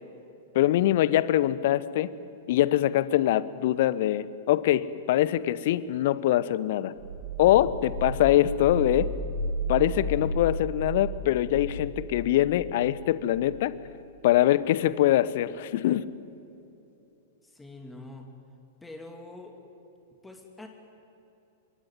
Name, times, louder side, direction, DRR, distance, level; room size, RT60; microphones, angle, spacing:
voice 1, 0.5-2.1 2.5-6.9 7.4-9.1 9.7-13.7 14.2-16.1, left 13 dB, 50° left, 17 dB, 1.0 m, -23 dB
sound 1, 7.0-13.7, right 1 dB, 50° right, 4.6 m, -34 dB
voice 2, 17.4-18.4 18.8-19.6 20.2-20.7, left 2 dB, 5° left, 4 dB, 2.6 m, -44 dB
25.5 x 22.0 x 9.3 m, 2.9 s
figure-of-eight pair, 100°, 0 cm